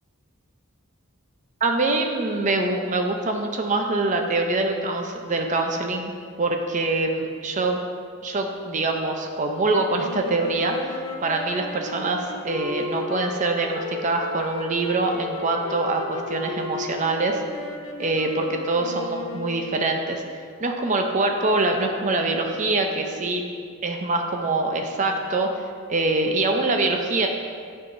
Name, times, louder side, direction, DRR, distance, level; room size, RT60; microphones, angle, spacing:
voice 1, 1.6-6.1 6.4-7.8 8.2-17.4 18.0-20.2 20.6-23.4 23.8-25.6 25.9-27.3, right 2 dB, 35° right, 4 dB, 0.5 m, -24 dB
sound 1, 9.9-20.0, left 2 dB, 70° left, 0.7 m, -35 dB
9.5 x 5.6 x 2.6 m, 2.2 s
head